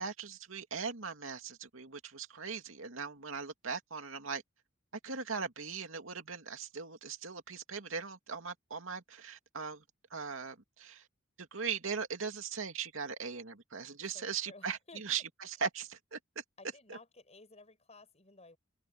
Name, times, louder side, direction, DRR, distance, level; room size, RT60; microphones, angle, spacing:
voice 1, 0.0-4.4 5.0-9.8 10.1-11.0 11.4-16.4 16.9-17.0, right 5 dB, 85° right, 2.5 m, -39 dB
voice 2, 14.1-15.0 16.6-18.6, left 3 dB, 35° left, 7.8 m, -55 dB
head